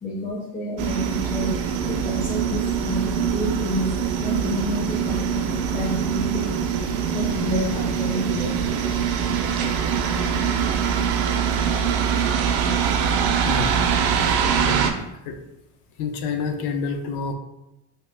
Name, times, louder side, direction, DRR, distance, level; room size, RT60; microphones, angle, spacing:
voice 1, 0.0-6.5 7.1-8.6, equal, 25° left, -5 dB, 0.4 m, -29 dB
sound 1, 0.8-14.9, right 7 dB, 65° right, 0.5 m, -23 dB
voice 2, 13.4-14.9 15.2-15.4 15.9-17.3, left 4 dB, 70° left, 5 dB, 0.6 m, -29 dB
2.9 x 2.7 x 3.3 m, 0.91 s
cardioid pair, 175°, 41 cm